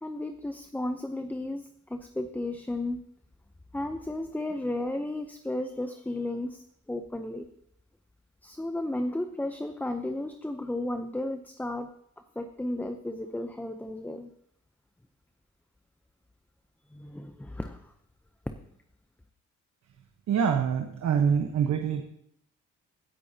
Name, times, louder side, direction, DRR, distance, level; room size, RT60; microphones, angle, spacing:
voice 1, 0.0-3.0 3.7-7.5 8.4-11.9 12.4-14.3 16.9-17.9, left 1 dB, 5° left, 7 dB, 0.6 m, -34 dB
voice 2, 20.3-22.0, right 7 dB, 65° right, 4 dB, 1.1 m, -25 dB
17.0 x 8.5 x 2.8 m, 0.70 s
cardioid pair, 90°, 30 cm